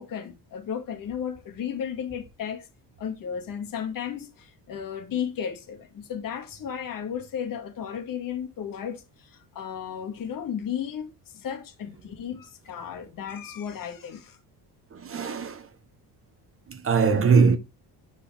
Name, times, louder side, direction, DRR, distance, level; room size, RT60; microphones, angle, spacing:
voice 1, 0.0-2.7 3.0-14.4, left 8 dB, 50° left, 2.1 m, -34 dB
voice 2, 14.9-15.7 16.7-17.6, right 5 dB, 30° right, 1.0 m, -21 dB
12.5 x 4.5 x 3.4 m
cardioid pair, 175°, 41 cm